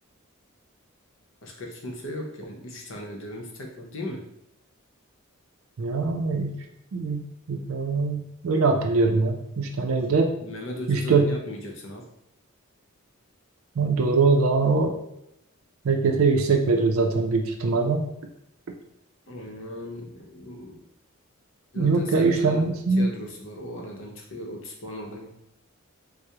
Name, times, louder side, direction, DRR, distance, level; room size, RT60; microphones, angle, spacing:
voice 1, 1.4-4.2 10.4-12.0 19.3-20.8 21.7-22.6 23.0-25.3, left 1 dB, 60° left, 0 dB, 0.7 m, -37 dB
voice 2, 5.8-6.6 6.9-10.3 10.9-11.3 13.8-15.0 15.8-18.1 21.8-23.1, right 4 dB, 70° right, 4 dB, 0.4 m, -22 dB
4.7 x 2.0 x 2.8 m, 0.79 s
head